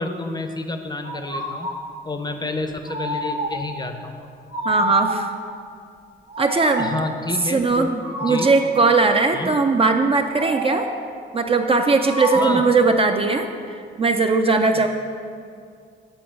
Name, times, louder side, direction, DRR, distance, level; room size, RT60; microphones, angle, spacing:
voice 1, 0.0-1.7 2.0-4.3 6.8-7.9 8.2-8.5 9.3-9.5 12.3-12.7 14.7-14.9, left 2 dB, 20° left, 6 dB, 0.6 m, -29 dB
sound 1, 1.0-1.9 2.8-3.7 4.5-5.4 6.3-7.1 8.0-8.7 10.3-11.1 12.0-12.8, right 1 dB, 50° right, 1.4 m, -28 dB
voice 2, 4.7-5.3 6.4-6.9 7.5-10.9 11.3-14.9, right 3 dB, 30° right, 5 dB, 0.4 m, -19 dB
8.1 x 3.8 x 6.3 m, 2.2 s
cardioid pair, 90°, 20 cm